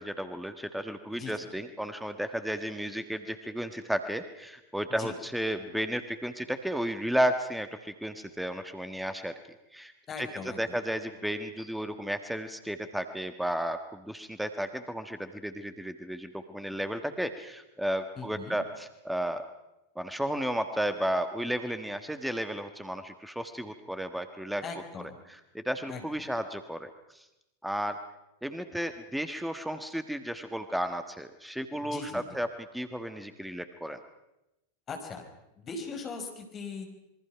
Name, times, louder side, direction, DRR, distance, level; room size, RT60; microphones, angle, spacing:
voice 1, 0.0-9.3 9.7-9.9 10.2-19.4 19.9-24.6 25.3-27.3 27.6-28.0 28.4-32.5 32.7-34.0, equal, ahead, 9 dB, 1.5 m, -33 dB
voice 2, 10.1-10.8 18.2-18.6 24.6-25.2 25.9-26.0 31.8-32.4 34.9-35.2 35.6-36.8, left 4 dB, 25° left, 4 dB, 5.1 m, -40 dB
27.0 x 23.5 x 5.9 m, 0.92 s
figure-of-eight pair, 90°, 0 cm